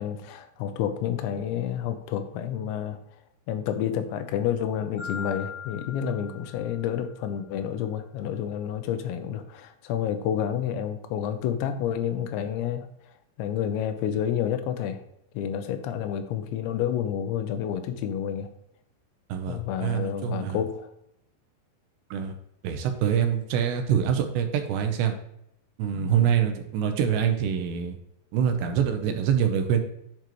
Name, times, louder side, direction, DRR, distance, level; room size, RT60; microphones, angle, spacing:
voice 1, 0.0-3.0 3.5-12.9 13.4-15.0 15.3-18.5 19.5-20.9 25.9-26.3, left 9 dB, 90° left, 9 dB, 3.0 m, -29 dB
Marimba xylophone, 5.0-7.2, left 7 dB, 60° left, 0.9 m, -40 dB
voice 2, 19.3-20.6 22.1-22.3 22.6-25.1 25.8-28.0 28.3-29.8, right 8 dB, 80° right, 6 dB, 2.8 m, -25 dB
10.5 x 4.8 x 3.0 m, 0.77 s
omnidirectional pair, 5.1 m